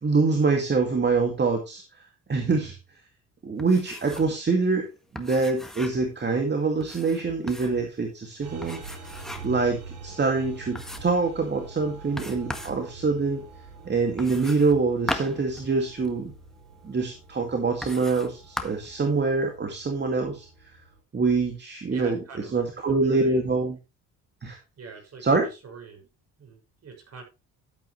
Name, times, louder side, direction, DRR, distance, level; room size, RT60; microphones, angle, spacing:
voice 1, 0.0-1.8 2.3-2.8 3.4-4.9 5.1-8.8 9.4-13.4 13.9-16.3 16.8-20.5 21.1-23.8 24.4-24.6 25.2-25.5, right 4 dB, 30° right, 4 dB, 2.2 m, -25 dB
sound 1, 3.6-4.4 4.6-4.7 5.1-6.1 6.8-7.8 8.6-9.6 10.1-10.2 10.7-11.2 12.2-12.8 14.2-16.2 17.0-17.1 17.8-18.3 18.6-18.9, left 1 dB, ahead, 1.7 m, -37 dB
sound 2, 8.4-21.0, right 4 dB, 85° right, 5.9 m, -45 dB
voice 2, 21.9-22.6 23.0-23.4 24.8-25.4 25.6-26.1 26.4-27.2, right 5 dB, 45° right, 3 dB, 6.1 m, -43 dB
12.0 x 8.4 x 3.2 m, 0.27 s
supercardioid pair, 80°, 35 cm